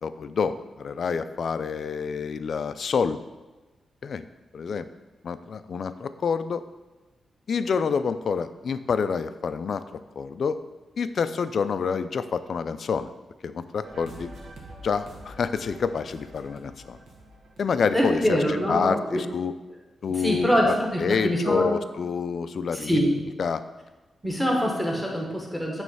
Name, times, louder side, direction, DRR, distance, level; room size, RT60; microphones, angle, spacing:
voice 1, 0.0-3.2 4.0-4.2 4.5-4.9 5.2-6.6 7.5-9.8 10.2-10.6 11.0-13.1 13.4-14.3 14.8-17.0 17.6-18.4 18.7-19.5 20.0-20.7 21.0-23.0 23.4-23.6, left 6 dB, 50° left, 12 dB, 0.3 m, -27 dB
sound 1, 13.8-18.8, right 1 dB, 65° right, 1.3 m, -46 dB
voice 2, 17.9-19.2 20.2-21.7 22.7-23.1 24.2-25.8, equal, 5° right, -1 dB, 1.2 m, -24 dB
9.3 x 3.1 x 5.6 m, 1.2 s
wide cardioid pair, 175°, 0 cm